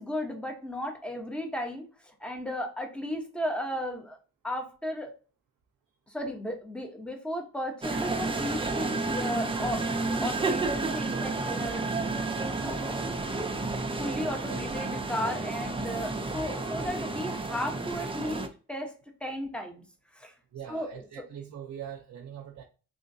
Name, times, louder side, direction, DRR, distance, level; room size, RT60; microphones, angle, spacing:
voice 1, 0.0-4.2 4.4-5.1 6.1-9.8 10.2-11.9 12.6-13.4 13.9-18.9 19.2-19.8 20.1-20.3 20.7-21.0, left 1 dB, 5° left, 0.9 m, -35 dB
sound 1, 7.8-18.5, right 3 dB, 15° right, 0.5 m, -31 dB
voice 2, 20.5-22.6, right 9 dB, 55° right, 0.6 m, -42 dB
3.8 x 2.8 x 2.7 m
cardioid pair, 95°, 34 cm